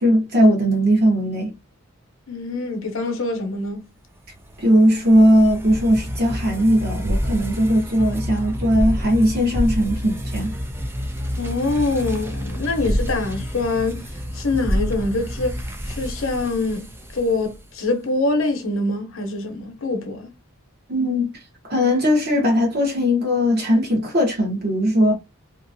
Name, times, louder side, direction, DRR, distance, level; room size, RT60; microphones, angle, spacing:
voice 1, 0.0-1.5 4.6-10.5 20.9-21.3 21.7-25.1, equal, 45° right, 1.1 m, -18 dB
voice 2, 2.3-3.8 11.4-14.1 14.3-20.3, left 2 dB, 65° left, 0.7 m, -24 dB
sound 1, 4.3-17.7, equal, 10° right, 0.3 m, -28 dB
2.9 x 2.4 x 2.6 m
head